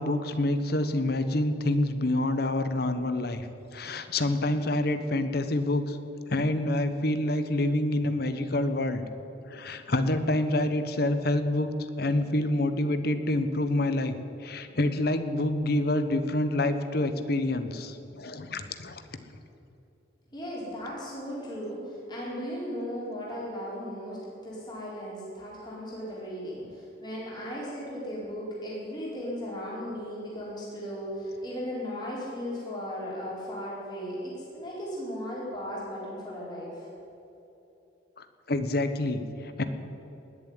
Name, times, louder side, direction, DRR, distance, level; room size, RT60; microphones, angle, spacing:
voice 1, 0.0-3.5 3.7-6.0 6.3-9.0 9.5-11.7 12.0-19.0 38.2-39.6, left 1 dB, 55° left, 10 dB, 1.0 m, -27 dB
voice 2, 20.3-24.2 24.4-36.9, equal, 20° left, -6 dB, 4.7 m, -36 dB
19.0 x 7.3 x 9.6 m, 2.8 s
head